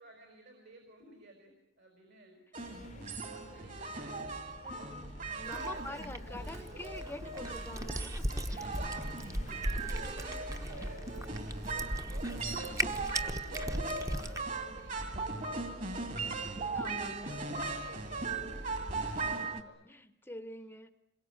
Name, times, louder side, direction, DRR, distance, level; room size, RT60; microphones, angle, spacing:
voice 1, 0.0-2.4 2.9-3.1 3.5-4.4 5.5-6.9 8.6-12.8 13.2-16.4 16.9-19.8, right 2 dB, 65° right, 3 dB, 5.0 m, -56 dB
sound 1, 2.5-19.6, right 3 dB, 45° right, 2.4 m, -39 dB
sound 2, 2.6-19.3, left 1 dB, 40° left, 1.0 m, -51 dB
voice 2, 4.6-8.9 9.5-9.6 10.0-10.4 10.8-11.0 16.7-17.4 19.2-20.9, left 1 dB, 10° left, 11 dB, 0.9 m, -47 dB
Cat, 5.4-14.4, right 1 dB, 20° right, 1.0 m, -38 dB
27.0 x 22.5 x 8.8 m, 0.80 s
head